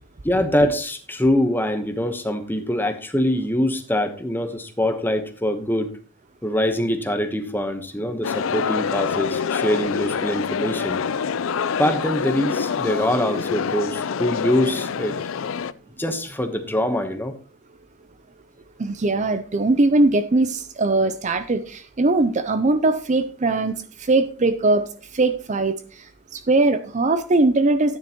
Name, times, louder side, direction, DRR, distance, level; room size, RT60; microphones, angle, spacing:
voice 1, 0.2-5.9 6.4-11.0 11.8-15.6 16.0-17.3, left 1 dB, 10° left, 7 dB, 1.1 m, -24 dB
sound 1, 8.2-15.7, left 6 dB, 65° left, 0.4 m, -26 dB
voice 2, 18.8-24.8 25.1-28.0, right 2 dB, 35° right, 11 dB, 0.5 m, -20 dB
13.0 x 9.7 x 3.0 m, 0.38 s
head